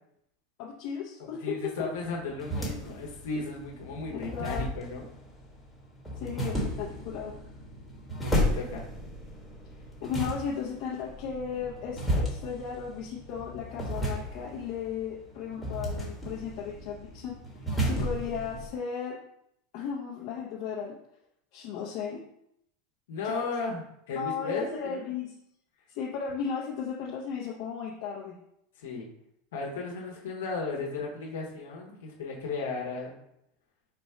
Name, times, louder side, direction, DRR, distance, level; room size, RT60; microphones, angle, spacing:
voice 1, 0.6-1.9 4.1-4.7 6.2-7.4 10.0-17.4 17.8-19.2 19.7-20.9 21.5-22.2 23.2-23.5 24.1-25.3 25.9-28.4, left 7 dB, 55° left, -4 dB, 0.7 m, -35 dB
voice 2, 1.4-5.1 8.2-8.8 23.1-25.1 28.8-29.1 29.5-33.1, left 3 dB, 85° left, -1 dB, 1.0 m, -35 dB
lazer tennis, 2.0-18.7, equal, 5° left, 1.2 m, -34 dB
4.1 x 2.3 x 4.3 m, 0.75 s
supercardioid pair, 135°, 0 cm